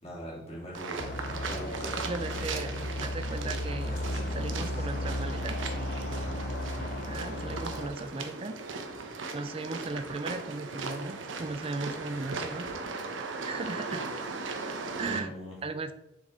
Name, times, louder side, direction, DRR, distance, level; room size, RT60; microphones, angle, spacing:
voice 1, 0.0-3.1 3.8-4.9 6.1-6.5 14.9-15.6, equal, 30° left, -6 dB, 2.8 m, -43 dB
sound 1, 0.7-15.2, right 4 dB, 80° right, 0.9 m, -38 dB
sound 2, 1.0-7.9, left 1 dB, 50° left, 0.5 m, -35 dB
voice 2, 2.0-2.7 3.0-4.0 4.3-5.6 7.1-8.6 8.8-8.9 9.3-12.7 13.5-14.0 15.0-15.3 15.6-15.9, right 3 dB, 30° right, 10 dB, 0.4 m, -37 dB
Bowed string instrument, 3.8-8.3, right 1 dB, 75° left, 1.6 m, -44 dB
7.0 x 5.1 x 3.9 m, 0.90 s
head